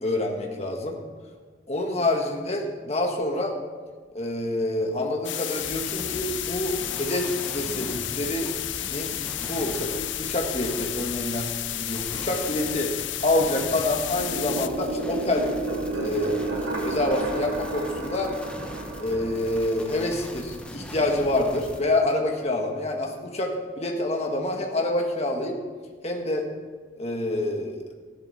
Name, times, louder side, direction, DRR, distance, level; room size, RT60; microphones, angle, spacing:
voice 1, 0.0-1.0 1.7-3.6 4.1-8.5 8.9-9.1 9.4-12.9 13.2-15.5 16.0-16.3 16.8-18.3 19.0-25.6 26.0-26.4 27.0-27.8, left 1 dB, 35° left, 2 dB, 1.5 m, -27 dB
sound 1, 5.2-14.7, left 13 dB, 75° left, 0.5 m, -32 dB
sound 2, 5.6-21.8, equal, 5° left, 1.0 m, -41 dB
sound 3, 14.1-20.6, right 2 dB, 90° right, 2.6 m, -32 dB
14.0 x 11.0 x 4.2 m, 1.5 s
head